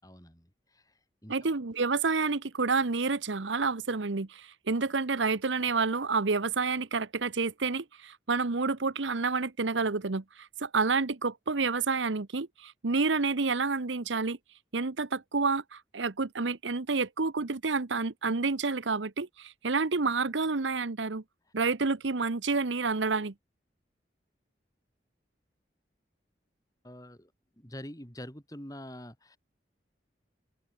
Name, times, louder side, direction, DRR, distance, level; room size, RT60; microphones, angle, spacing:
voice 1, 0.0-1.3 26.8-27.3 27.6-29.4, left 1 dB, 20° left, 4.0 m, -46 dB
voice 2, 1.3-14.4 14.7-21.2 21.5-23.3, right 4 dB, 90° right, 1.0 m, -29 dB
open air
head